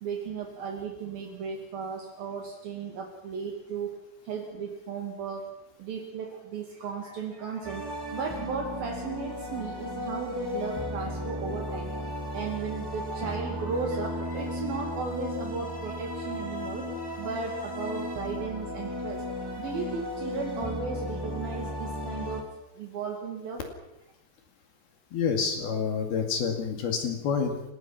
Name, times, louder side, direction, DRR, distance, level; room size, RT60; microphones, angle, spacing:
voice 1, 0.0-4.0 4.3-5.5 5.8-12.0 12.3-16.9 17.2-19.2 19.6-22.4 22.8-23.6, right 5 dB, 65° right, 1 dB, 4.1 m, -35 dB
sound 1, 7.6-22.4, left 1 dB, 5° right, 2.6 m, -35 dB
voice 2, 25.1-27.6, left 6 dB, 70° left, 4 dB, 4.1 m, -28 dB
30.0 x 18.5 x 6.0 m, 0.92 s
omnidirectional pair, 4.7 m